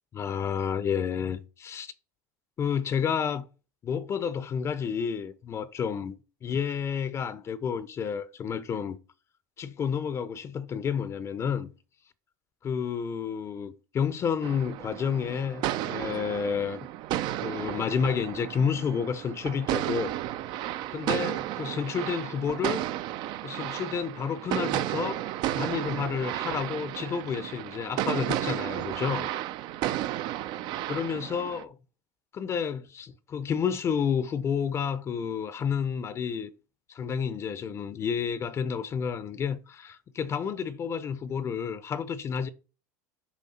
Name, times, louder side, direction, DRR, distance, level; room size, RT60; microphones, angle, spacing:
voice 1, 0.1-1.9 2.6-3.5 3.8-6.1 6.4-9.0 9.6-11.7 12.6-16.9 17.4-20.1 20.6-20.7 20.9-22.9 23.4-25.2 25.5-29.3 30.9-31.8 32.3-36.5 36.9-42.5, left 7 dB, 30° left, 0.6 m, -30 dB
sound 1, 14.4-31.6, right 13 dB, 55° right, 0.5 m, -33 dB
7.3 x 4.8 x 4.3 m
supercardioid pair, 110°, 9 cm